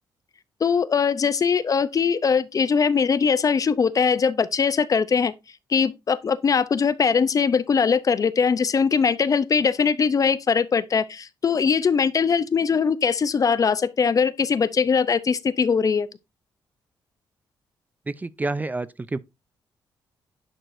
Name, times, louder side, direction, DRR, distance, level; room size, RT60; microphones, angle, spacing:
voice 1, 0.6-5.3 5.7-16.1, left 6 dB, 45° left, 0.6 m, -21 dB
voice 2, 18.1-19.2, right 2 dB, 20° right, 0.4 m, -29 dB
10.0 x 4.5 x 2.6 m
cardioid pair, 80°, 8 cm